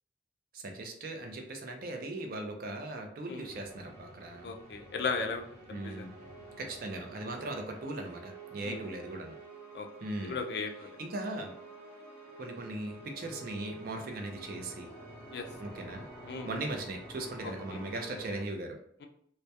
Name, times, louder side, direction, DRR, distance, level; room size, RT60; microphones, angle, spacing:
voice 1, 0.5-4.5 5.7-6.1 6.6-9.4 10.0-10.4 11.0-11.5 12.4-14.9 15.6-16.0 16.4-18.8, right 2 dB, 50° right, 3 dB, 0.4 m, -39 dB
sound 1, 3.4-18.4, right 2 dB, 20° left, 0.9 m, -49 dB
voice 2, 4.4-6.0 8.6-8.8 9.7-9.9 10.2-11.0 15.3-15.5 16.3-16.5 17.4-17.5, left 4 dB, 60° left, 4 dB, 0.4 m, -36 dB
2.2 x 2.1 x 2.7 m, 0.66 s
head